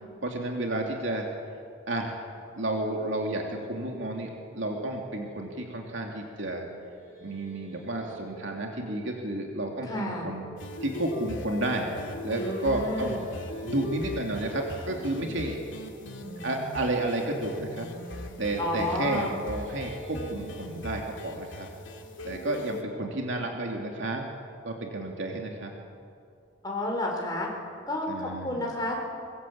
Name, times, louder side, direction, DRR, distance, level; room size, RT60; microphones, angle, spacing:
voice 1, 0.2-1.3 1.9-2.2 2.6-6.6 7.2-10.4 10.8-12.0 12.2-13.2 13.6-15.6 16.4-17.9 18.4-21.7 22.2-24.3 24.6-25.7 28.1-28.6, right 2 dB, 65° right, 1 dB, 2.8 m, -31 dB
sound 1, 6.7-23.8, equal, 10° right, 7.9 m, -49 dB
voice 2, 9.8-10.3 12.4-13.2 18.6-19.3 26.6-27.5 27.9-28.9, left 1 dB, 20° left, -1 dB, 5.4 m, -31 dB
sound 2, 10.6-22.8, left 1 dB, 65° left, 2.9 m, -39 dB
23.5 x 22.5 x 8.7 m, 2.5 s
head